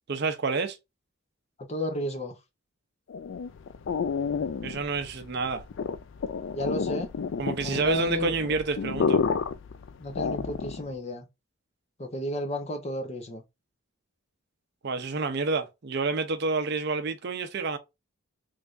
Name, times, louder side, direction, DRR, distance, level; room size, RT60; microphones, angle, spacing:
voice 1, 0.1-0.8 4.6-5.6 7.4-9.2 14.8-17.8, right 4 dB, 50° right, 0.5 m, -29 dB
voice 2, 1.6-2.3 6.5-7.1 7.6-8.5 10.0-11.3 12.0-13.4, equal, 30° left, 0.7 m, -32 dB
sound 1, 3.1-10.9, left 6 dB, 55° left, 0.3 m, -30 dB
3.4 x 3.2 x 2.4 m
head